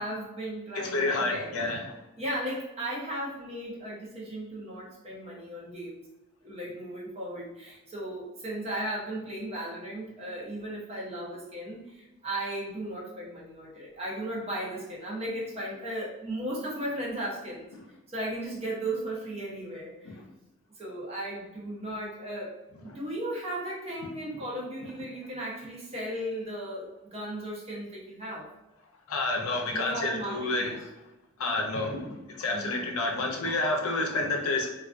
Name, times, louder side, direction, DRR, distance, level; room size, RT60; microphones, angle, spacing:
voice 1, 0.0-1.5 2.2-6.0 6.4-17.7 18.1-20.2 20.8-28.5 29.7-30.8 32.5-32.8, right 1 dB, 30° right, -4 dB, 0.6 m, -36 dB
voice 2, 0.7-1.8 29.1-30.8 31.4-34.7, left 2 dB, 80° left, 2 dB, 0.5 m, -29 dB
2.3 x 2.2 x 2.4 m, 0.97 s
head